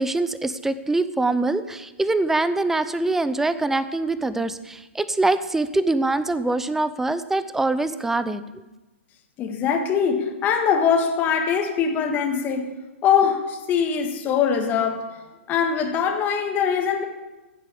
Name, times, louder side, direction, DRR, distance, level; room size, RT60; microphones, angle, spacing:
voice 1, 0.0-8.4, right 2 dB, 5° right, 14 dB, 0.7 m, -24 dB
voice 2, 9.4-12.8 13.0-15.2 15.5-17.1, left 7 dB, 25° left, 3 dB, 1.8 m, -22 dB
15.5 x 7.5 x 8.6 m, 1.1 s
hypercardioid pair, 130°, 7 cm